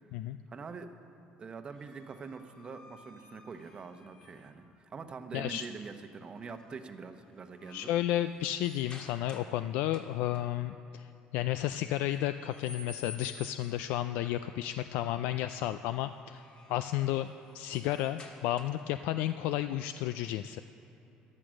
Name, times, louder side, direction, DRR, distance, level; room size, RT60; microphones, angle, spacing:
voice 1, 0.5-0.9 1.4-7.9, right 5 dB, 30° right, 8 dB, 0.9 m, -44 dB
sound 1, 1.7-4.6 6.4-6.8 7.2-9.6 9.9-10.4 11.9-13.8 16.1-19.0, left 4 dB, 35° left, 1.8 m, -52 dB
voice 2, 5.3-5.6 7.7-16.4 16.7-17.3 17.5-20.6, left 13 dB, 80° left, 11 dB, 0.3 m, -32 dB
13.5 x 11.0 x 6.4 m, 2.9 s
cardioid pair, 110°, 3 cm